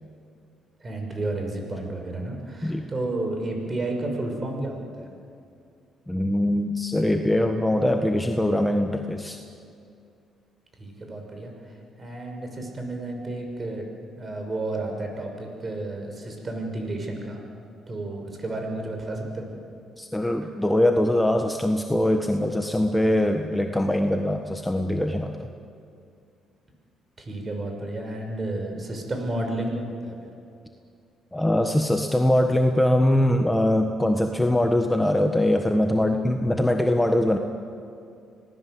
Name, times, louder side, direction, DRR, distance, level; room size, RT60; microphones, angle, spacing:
voice 1, 0.8-5.1 10.8-11.5 12.0-13.8 14.2-17.4 17.9-19.5 20.4-20.5 27.2-30.3, right 2 dB, 30° right, 3 dB, 6.0 m, -31 dB
voice 2, 6.1-9.4 20.0-25.5 31.3-37.4, left 1 dB, 10° left, 4 dB, 1.5 m, -22 dB
26.5 x 19.0 x 8.0 m, 2.5 s
cardioid pair, 85°, 0 cm